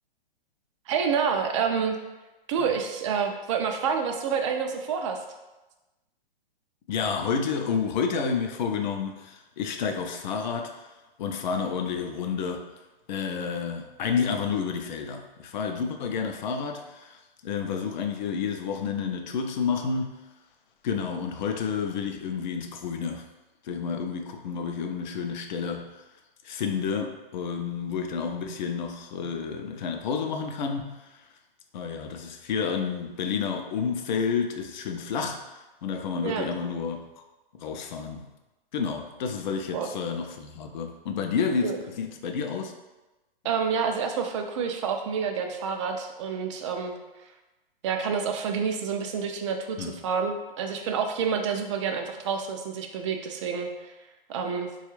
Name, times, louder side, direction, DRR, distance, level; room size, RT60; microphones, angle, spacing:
voice 1, 0.9-2.0 2.5-5.2 36.2-36.4 39.7-39.9 41.6-41.8 43.4-46.9 47.8-53.9 54.3-54.7, right 6 dB, 35° right, 4 dB, 0.4 m, -28 dB
voice 2, 6.9-10.8 11.2-12.7 13.1-20.1 20.8-23.3 23.6-25.9 26.4-31.0 31.7-37.1 37.5-38.3 38.7-42.7 49.8-49.9, left 6 dB, 50° left, 5 dB, 0.5 m, -30 dB
3.9 x 2.3 x 3.0 m, 1.1 s
hypercardioid pair, 130°, 29 cm